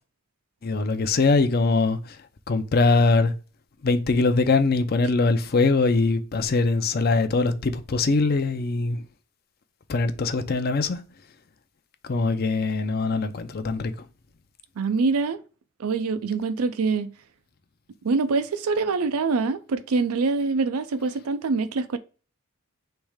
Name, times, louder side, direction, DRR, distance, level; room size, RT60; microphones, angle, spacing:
voice 1, 0.6-2.2 2.5-3.3 3.8-9.0 9.9-11.0 12.0-13.9, left 3 dB, 45° left, 0.5 m, -22 dB
voice 2, 14.8-15.4 15.8-17.1 18.0-22.0, right 4 dB, 85° right, 0.5 m, -24 dB
3.3 x 3.2 x 4.8 m
head